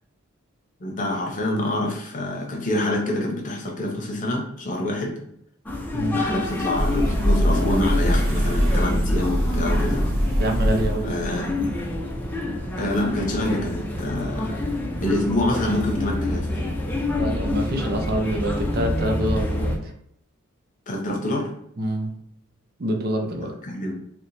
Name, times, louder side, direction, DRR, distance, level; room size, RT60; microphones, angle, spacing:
voice 1, 0.8-5.1 6.1-10.0 11.0-11.8 12.8-14.6 15.0-16.5 20.9-21.5 23.6-23.9, left 1 dB, 40° left, 0 dB, 0.8 m, -26 dB
sound 1, 5.7-19.8, left 1 dB, 10° left, 0.5 m, -28 dB
sound 2, 6.8-11.4, equal, 85° right, 1.0 m, -22 dB
voice 2, 10.4-11.1 17.2-19.9 21.8-22.1 22.8-23.5, right 1 dB, 50° right, 3 dB, 0.6 m, -26 dB
3.0 x 2.2 x 4.0 m, 0.71 s
head